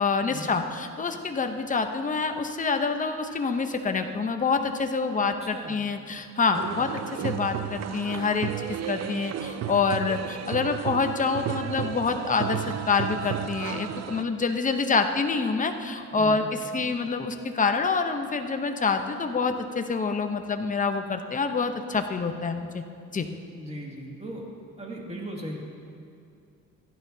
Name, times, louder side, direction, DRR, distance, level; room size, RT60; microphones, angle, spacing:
voice 1, 0.0-6.9 7.2-8.5 8.9-22.8 23.1-23.3, left 4 dB, 25° left, 6 dB, 0.8 m, -27 dB
voice 2, 5.2-5.8 6.5-6.9 16.1-16.5 23.5-24.4 24.8-25.6, right 1 dB, 20° right, -2 dB, 2.2 m, -38 dB
sound 1, 6.5-14.2, right 10 dB, 60° right, 0.5 m, -33 dB
15.0 x 11.5 x 2.8 m, 2.5 s
cardioid pair, 90°, 30 cm